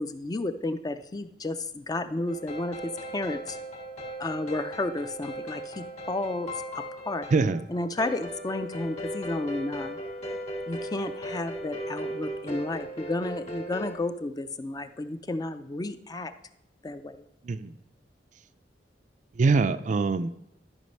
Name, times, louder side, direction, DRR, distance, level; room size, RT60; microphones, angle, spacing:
voice 1, 0.0-3.6 4.2-6.5 6.7-7.3 7.7-10.0 10.7-16.3 16.8-17.2, left 2 dB, 20° left, 10 dB, 0.4 m, -32 dB
sound 1, 2.3-13.9, right 1 dB, 40° left, 1.9 m, -37 dB
voice 2, 7.3-7.7 17.4-17.8 19.4-20.3, right 4 dB, 45° right, 12 dB, 0.4 m, -24 dB
12.5 x 5.1 x 5.4 m, 0.80 s
head